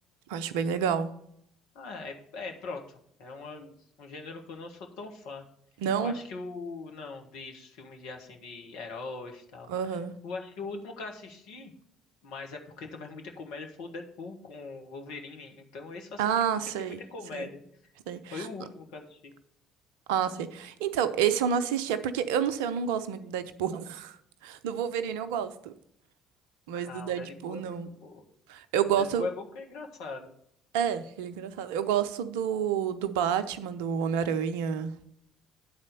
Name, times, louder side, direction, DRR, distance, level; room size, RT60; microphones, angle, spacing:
voice 1, 0.3-1.1 5.8-6.1 9.7-10.1 16.2-17.0 17.3-17.5 18.1-18.5 20.1-24.2 24.4-25.7 26.7-27.9 28.5-29.3 30.7-34.9, right 8 dB, 70° right, 11 dB, 0.6 m, -29 dB
voice 2, 1.7-5.4 6.0-11.7 12.2-16.5 16.8-17.6 18.3-19.3 26.7-28.2 28.9-30.3, left 3 dB, 65° left, 3 dB, 1.4 m, -41 dB
9.6 x 4.2 x 6.6 m, 0.70 s
figure-of-eight pair, 55°, 0 cm